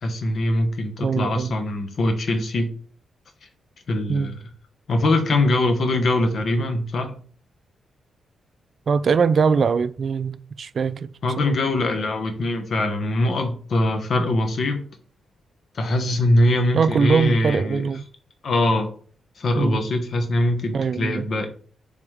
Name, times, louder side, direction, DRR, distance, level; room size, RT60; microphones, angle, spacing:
voice 1, 0.0-2.7 3.9-4.5 4.9-7.1 11.2-14.8 15.7-17.9 18.4-18.9 19.4-21.5, left 1 dB, 60° left, 1.3 m, -22 dB
voice 2, 1.0-1.6 4.1-4.4 8.9-11.1 11.4-11.6 16.7-18.0 19.6-19.9 20.7-21.2, right 5 dB, 55° right, 0.4 m, -22 dB
7.2 x 3.9 x 3.4 m
cardioid pair, 90°, 0 cm